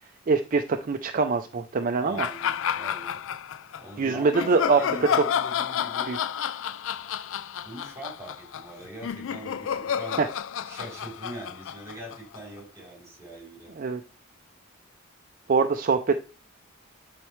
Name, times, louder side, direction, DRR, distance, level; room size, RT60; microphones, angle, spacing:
voice 1, 0.3-2.3 4.0-4.8 6.1-6.2 10.2-10.3 13.8-14.0 15.5-16.1, right 4 dB, 40° right, 8 dB, 0.4 m, -23 dB
voice 2, 2.0-3.2 3.8-6.1 7.6-10.2 10.6-13.7, right 1 dB, 15° right, -1 dB, 3.4 m, -42 dB
sound 1, 2.2-3.8 4.3-12.6, left 8 dB, 65° left, 0.4 m, -30 dB
10.5 x 4.4 x 3.1 m, 0.35 s
head